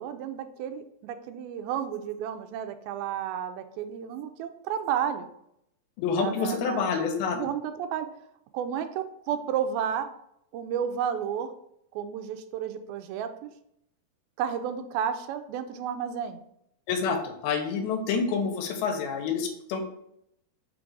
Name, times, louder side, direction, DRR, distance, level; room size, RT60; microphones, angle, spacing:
voice 1, 0.0-5.3 6.2-6.9 7.3-8.1 8.5-10.1 10.5-11.5 11.9-13.3 14.4-16.4, right 8 dB, 85° right, 8 dB, 2.3 m, -32 dB
voice 2, 6.0-7.4 16.9-19.8, left 5 dB, 90° left, 4 dB, 2.7 m, -28 dB
5.8 x 3.8 x 4.7 m, 0.76 s
omnidirectional pair, 4.3 m